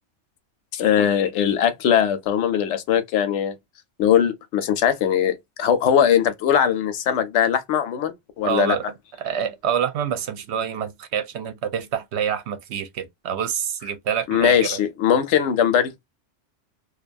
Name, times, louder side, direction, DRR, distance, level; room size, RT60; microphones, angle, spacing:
voice 1, 0.7-3.5 4.0-8.8 14.3-15.9, left 9 dB, 75° left, 0.8 m, -20 dB
voice 2, 8.4-8.9 9.2-14.8, right 8 dB, 70° right, 0.8 m, -26 dB
2.6 x 2.3 x 2.5 m
omnidirectional pair, 1.3 m